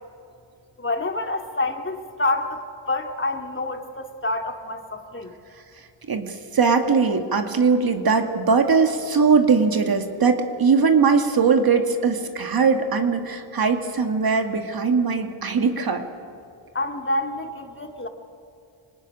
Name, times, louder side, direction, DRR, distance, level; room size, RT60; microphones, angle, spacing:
voice 1, 0.8-2.6 2.9-5.3 16.7-18.1, left 2 dB, 25° left, 4 dB, 2.3 m, -27 dB
voice 2, 6.1-16.0, right 5 dB, 45° right, 6 dB, 2.2 m, -20 dB
25.5 x 19.0 x 10.0 m, 2.4 s
cardioid pair, 75°, 48 cm